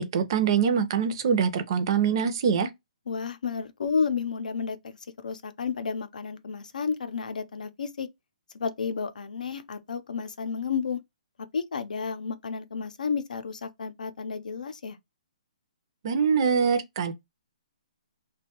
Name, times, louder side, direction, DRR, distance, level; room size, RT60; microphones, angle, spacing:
voice 1, 0.0-2.7 16.0-17.1, right 6 dB, 35° right, 0.5 m, -24 dB
voice 2, 3.1-8.1 8.5-11.0 11.5-15.0, left 5 dB, 80° left, 0.5 m, -31 dB
2.5 x 2.2 x 2.8 m
hypercardioid pair, 165°, 4 cm